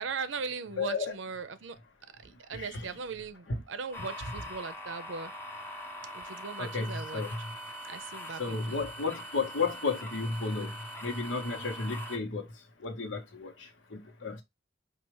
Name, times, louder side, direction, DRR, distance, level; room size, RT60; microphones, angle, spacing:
voice 1, 0.0-1.8 2.2-5.3 6.1-7.2 7.9-8.8, right 5 dB, 80° right, 0.6 m, -39 dB
voice 2, 0.8-1.1 2.5-2.9 3.5-3.6 6.6-7.4 8.4-10.8 11.0-12.5 12.8-14.4, left 4 dB, 90° left, 1.0 m, -33 dB
sound 1, 3.9-12.2, equal, 10° left, 0.7 m, -43 dB
4.7 x 2.4 x 3.0 m
head